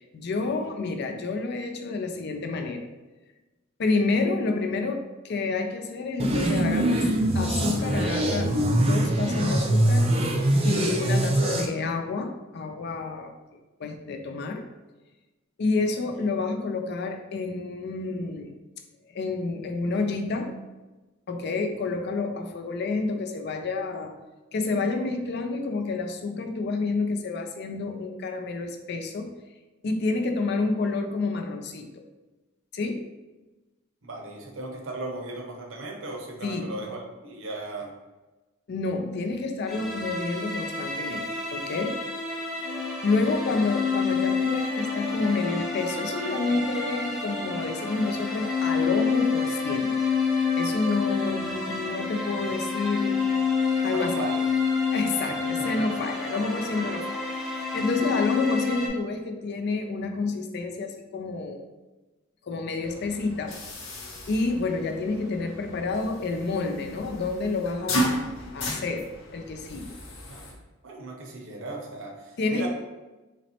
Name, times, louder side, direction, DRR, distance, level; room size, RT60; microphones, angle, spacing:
voice 1, 0.1-2.9 3.8-10.1 10.6-14.7 15.6-18.5 19.1-20.6 21.3-24.1 24.5-29.3 29.8-32.1 32.7-33.0 36.4-36.8 38.7-42.0 43.0-49.9 50.3-53.3 53.8-54.2 54.9-61.6 62.4-63.6 64.3-70.0 72.4-72.7, left 3 dB, 55° left, 6 dB, 0.4 m, -29 dB
sound 1, 6.2-11.7, right 1 dB, 30° right, 0.4 m, -23 dB
voice 2, 34.0-37.9 43.2-43.6 52.4-52.5 53.9-54.4 55.2-55.9 70.1-70.5 70.8-72.7, right 2 dB, 70° right, 1 dB, 0.8 m, -37 dB
sound 2, 39.7-58.9, left 5 dB, ahead, 0.8 m, -28 dB
sound 3, 62.8-70.5, equal, 80° left, 0.8 m, -34 dB
4.1 x 3.1 x 2.8 m, 1.1 s
head